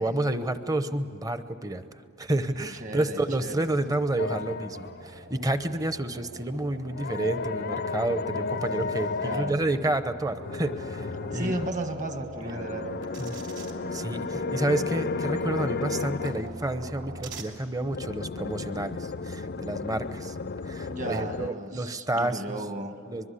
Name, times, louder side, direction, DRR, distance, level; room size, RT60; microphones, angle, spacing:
voice 1, 0.0-1.8 2.2-11.5 12.4-12.6 13.2-13.4 13.9-20.3 20.6-22.6 23.1-23.3, right 1 dB, 15° right, 11 dB, 0.9 m, -30 dB
sound 1, 2.4-17.4, right 1 dB, 60° right, 3.1 m, -44 dB
voice 2, 2.8-3.7 9.2-9.6 11.3-12.9 20.9-23.0, right 1 dB, 35° right, 6 dB, 1.7 m, -34 dB
sound 2, 4.2-5.1 6.9-9.5 10.4-11.7 12.4-16.5 17.8-21.5, left 4 dB, 50° left, 0.6 m, -33 dB
24.0 x 22.5 x 8.4 m, 2.6 s
head